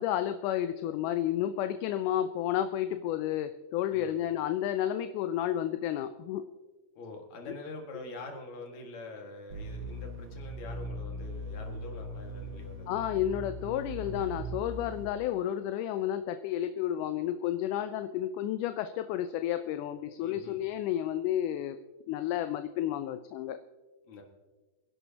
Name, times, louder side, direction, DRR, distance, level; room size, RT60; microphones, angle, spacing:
voice 1, 0.0-6.4 12.9-21.8 22.1-23.6, left 11 dB, 80° left, 9 dB, 2.1 m, -31 dB
voice 2, 3.9-4.2 6.9-13.1 20.2-20.6 24.0-24.2, left 2 dB, 60° left, 2 dB, 3.1 m, -45 dB
sound 1, 9.5-15.1, equal, 75° right, 1.1 m, -40 dB
25.5 x 11.0 x 2.9 m, 1.3 s
omnidirectional pair, 3.7 m